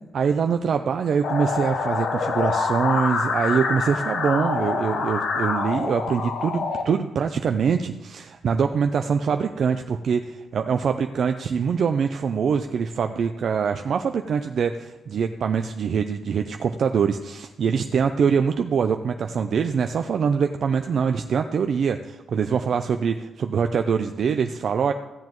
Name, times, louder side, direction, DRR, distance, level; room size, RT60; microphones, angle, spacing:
voice 1, 0.1-24.9, right 6 dB, 55° right, 6 dB, 0.5 m, -24 dB
sound 1, 1.2-6.8, left 4 dB, 65° left, 1.1 m, -26 dB
15.0 x 7.5 x 3.1 m, 1.0 s
cardioid pair, 135°, 0 cm